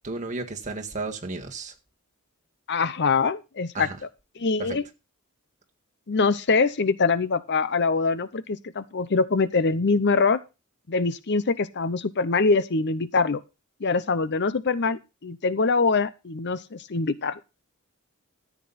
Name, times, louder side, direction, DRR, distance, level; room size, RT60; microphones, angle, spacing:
voice 1, 0.0-1.7 3.7-4.0 4.6-4.8, right 3 dB, 35° right, 1.8 m, -33 dB
voice 2, 2.7-3.9 4.4-4.8 6.1-10.4 10.9-13.4 13.8-17.4, left 4 dB, 50° left, 0.7 m, -24 dB
14.0 x 8.4 x 4.1 m
head